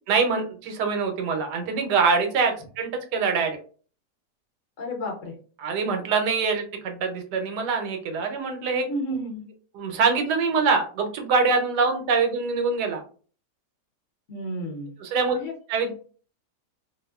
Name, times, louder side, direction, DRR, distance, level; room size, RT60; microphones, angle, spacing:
voice 1, 0.1-3.6 5.6-8.8 9.7-13.0 15.0-15.4 15.7-15.9, right 5 dB, 90° right, 5 dB, 1.2 m, -24 dB
voice 2, 4.8-5.3 8.9-9.4 14.3-14.9 15.3-15.5, equal, 50° left, 0 dB, 1.0 m, -31 dB
2.9 x 2.0 x 2.2 m, 0.40 s
omnidirectional pair, 1.8 m